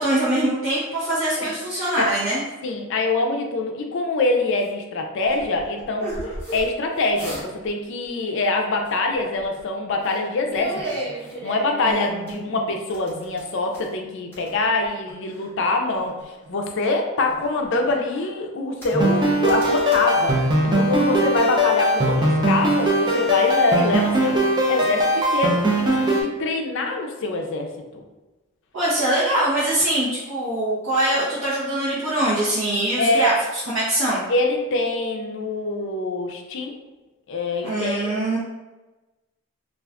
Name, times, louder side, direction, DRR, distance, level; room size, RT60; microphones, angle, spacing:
voice 1, 0.0-2.4 11.8-12.7 28.7-34.2 37.6-38.4, right 1 dB, 60° right, -10 dB, 0.8 m, -23 dB
voice 2, 2.6-6.1 6.5-11.0 11.4-20.4 20.6-24.4 24.7-27.7 27.9-28.0 32.9-33.3 34.3-36.7 37.3-38.4, left 2 dB, 55° left, 3 dB, 0.4 m, -24 dB
sound 1, 4.6-4.7 5.2-6.7 7.0-7.7 7.9-8.2 8.9-9.6 10.0-10.2 10.5-12.4 12.9-14.0 14.3-15.5 15.9-16.7 17.2-18.3 18.8-19.2 19.4-20.0, right 1 dB, 10° left, 0.9 m, -35 dB
sound 2, 18.9-26.2, right 1 dB, 20° right, 0.4 m, -20 dB
2.4 x 2.2 x 3.5 m, 1.1 s
head